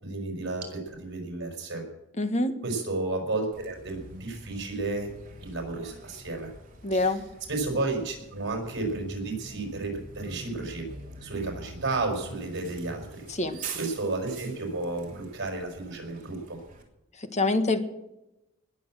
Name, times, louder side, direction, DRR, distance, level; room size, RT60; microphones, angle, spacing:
voice 1, 0.0-1.8 2.6-5.1 5.4-6.5 6.9-7.1 7.5-10.9 11.2-13.1 13.7-16.6, right 3 dB, 60° right, 3 dB, 5.7 m, -32 dB
voice 2, 2.2-2.5 6.8-7.2 13.3-13.6 17.2-17.8, left 2 dB, 35° left, 8 dB, 1.6 m, -25 dB
Bus, 3.5-16.8, right 3 dB, 40° right, 3.2 m, -45 dB
20.0 x 7.7 x 7.8 m, 0.91 s
head